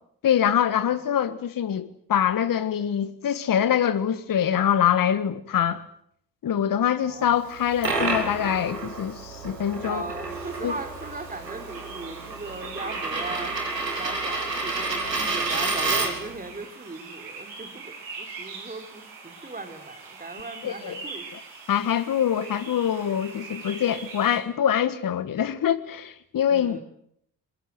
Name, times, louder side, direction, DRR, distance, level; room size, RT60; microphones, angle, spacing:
voice 1, 0.2-5.8 6.4-10.1 10.6-10.7 20.6-21.0 21.3-21.4 21.7-26.8, left 9 dB, 40° left, 1.6 m, -24 dB
voice 2, 7.0-7.4 9.9-21.3 26.5-26.8, right 2 dB, 15° right, 4.0 m, -38 dB
Coin (dropping), 7.5-16.4, right 3 dB, 90° right, 2.5 m, -30 dB
sound 1, 10.3-24.4, right 4 dB, 65° right, 7.1 m, -42 dB
23.5 x 23.0 x 7.7 m
figure-of-eight pair, 45°, 49 cm